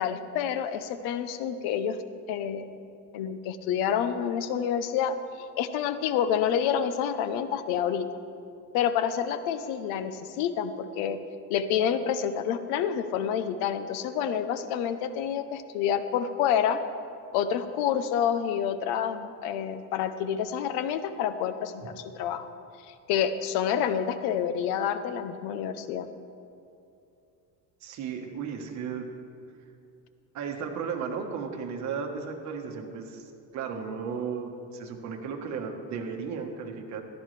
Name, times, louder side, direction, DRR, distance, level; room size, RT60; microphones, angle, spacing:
voice 1, 0.0-2.0 2.3-2.7 3.1-5.2 5.6-8.1 8.7-11.2 11.5-16.8 17.3-22.5 22.9-26.1, left 8 dB, 85° left, 11 dB, 0.8 m, -28 dB
voice 2, 27.8-29.1 30.3-37.0, right 6 dB, 50° right, 2 dB, 1.4 m, -35 dB
14.5 x 12.5 x 3.3 m, 2.6 s
cardioid pair, 150°, 37 cm